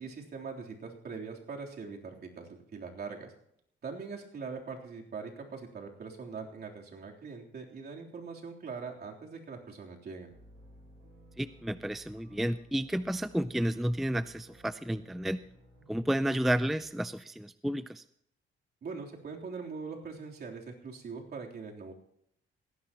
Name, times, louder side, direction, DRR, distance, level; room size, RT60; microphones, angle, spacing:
voice 1, 0.0-3.3 3.8-10.3 18.8-21.9, right 5 dB, 55° right, -1 dB, 3.5 m, -42 dB
sound 1, 10.3-16.9, right 1 dB, 90° right, 6.9 m, -58 dB
voice 2, 11.4-15.4 15.9-18.0, right 1 dB, ahead, 14 dB, 0.4 m, -31 dB
19.0 x 16.0 x 3.0 m, 0.70 s
cardioid pair, 90°, 20 cm